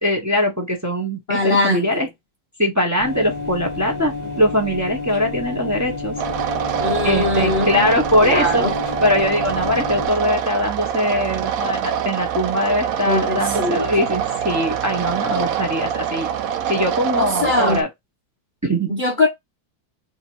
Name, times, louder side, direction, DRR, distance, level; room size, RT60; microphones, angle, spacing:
voice 1, 0.0-2.1 2.6-6.2 7.0-8.6 9.0-16.3 16.7-17.9 18.6-19.0, left 1 dB, 15° right, 0.7 m, -21 dB
voice 2, 1.3-2.1 6.8-7.9 8.2-8.7 13.1-13.9 17.2-17.8 18.9-19.3, left 3 dB, 55° left, 0.5 m, -21 dB
sound 1, 3.0-10.1, left 3 dB, 25° left, 1.3 m, -30 dB
sound 2, 6.2-17.8, right 9 dB, 70° right, 0.9 m, -24 dB
3.5 x 2.9 x 4.6 m
omnidirectional pair, 2.1 m